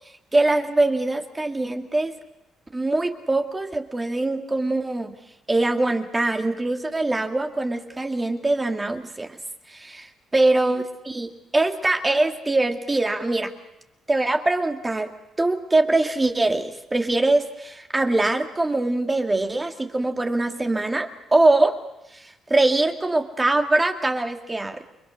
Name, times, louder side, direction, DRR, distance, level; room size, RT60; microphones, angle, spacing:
voice 1, 0.3-2.1 2.7-5.2 5.5-9.4 9.7-13.5 14.1-15.1 15.4-21.8 22.1-22.2 22.5-24.8, right 2 dB, 20° right, 4 dB, 2.3 m, -23 dB
29.5 x 22.0 x 6.4 m, 0.89 s
cardioid pair, 90°, 0 cm